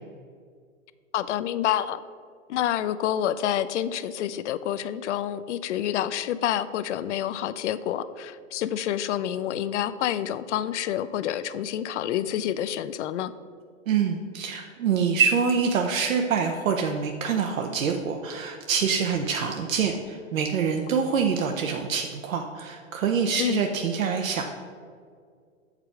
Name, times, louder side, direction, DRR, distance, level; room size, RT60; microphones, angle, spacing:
voice 1, 1.1-2.0 2.5-13.3 23.4-23.6, left 11 dB, 60° left, 14 dB, 0.5 m, -28 dB
voice 2, 13.9-24.4, right 6 dB, 75° right, 3 dB, 0.7 m, -25 dB
6.6 x 4.9 x 4.8 m, 2.1 s
hypercardioid pair, 130°, 40 cm